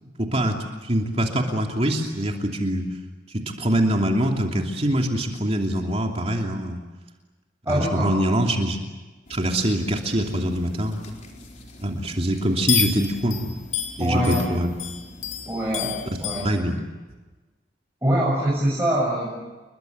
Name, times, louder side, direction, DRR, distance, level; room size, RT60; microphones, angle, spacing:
voice 1, 0.0-2.8 3.6-6.8 7.7-8.8 9.3-11.0 11.8-13.5 14.0-14.7 16.4-16.8, right 1 dB, 35° right, 2 dB, 3.0 m, -24 dB
voice 2, 7.7-8.1 14.0-14.5 15.5-16.5 18.0-19.4, right 1 dB, 15° right, -6 dB, 7.9 m, -24 dB
sound 1, 9.3-16.6, left 9 dB, 40° left, 4.6 m, -32 dB
29.5 x 23.0 x 8.0 m, 1.2 s
head